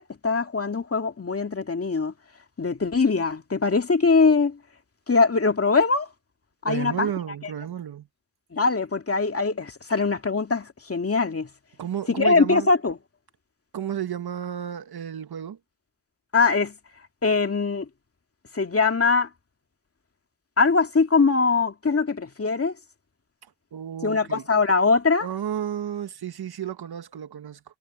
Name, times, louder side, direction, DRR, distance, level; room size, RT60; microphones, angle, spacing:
voice 1, 0.0-2.1 2.6-4.6 5.1-6.1 6.6-7.1 8.5-11.5 12.1-12.9 16.3-16.7 17.2-17.9 18.5-19.3 20.6-22.7 24.0-25.3, left 4 dB, 35° left, 2.3 m, -22 dB
voice 2, 6.7-8.1 11.8-12.7 13.7-15.6 23.7-24.5 25.2-27.6, right 9 dB, 60° right, 1.8 m, -32 dB
supercardioid pair, 50°, 42 cm